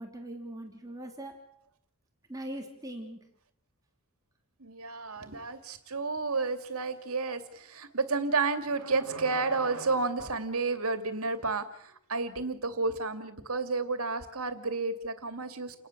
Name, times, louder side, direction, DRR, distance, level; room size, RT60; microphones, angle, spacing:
voice 1, 0.0-1.4 2.3-3.2, right 1 dB, 15° right, 2 dB, 3.2 m, -41 dB
voice 2, 4.6-15.9, right 3 dB, 80° right, 9 dB, 2.7 m, -31 dB
29.5 x 19.5 x 7.4 m, 0.68 s
head